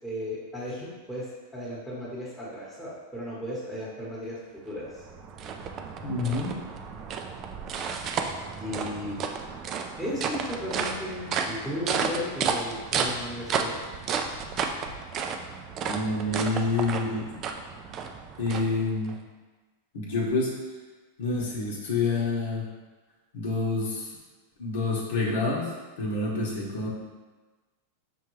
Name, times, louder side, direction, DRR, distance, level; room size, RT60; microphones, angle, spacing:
voice 1, 0.0-1.3 1.5-5.0 8.6-9.2 10.0-13.8, left 1 dB, 10° left, -8 dB, 1.0 m, -35 dB
sound 1, 4.7-19.2, right 6 dB, 35° right, 0.4 m, -32 dB
voice 2, 6.0-6.6 15.8-17.3 18.4-19.2 19.9-20.5 21.2-22.7 23.3-24.1 24.6-26.9, left 3 dB, 75° left, -4 dB, 0.9 m, -28 dB
5.6 x 2.3 x 3.1 m, 1.3 s
hypercardioid pair, 120°, 0 cm